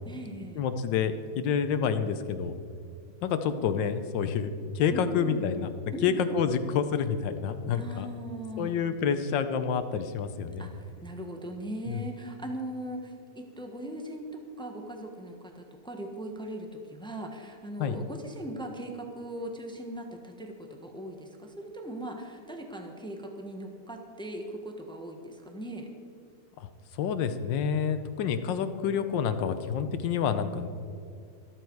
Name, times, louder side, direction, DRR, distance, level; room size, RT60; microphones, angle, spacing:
voice 1, 0.0-0.6 4.9-6.3 7.7-8.7 10.6-25.9, right 1 dB, 5° left, 3 dB, 0.9 m, -39 dB
voice 2, 0.6-2.5 3.2-5.7 6.0-8.1 8.6-10.7 11.9-12.0 17.8-18.0 26.6-26.7 27.0-30.7, left 7 dB, 90° left, 10 dB, 1.5 m, -28 dB
13.5 x 13.0 x 4.7 m, 2.4 s
omnidirectional pair, 1.9 m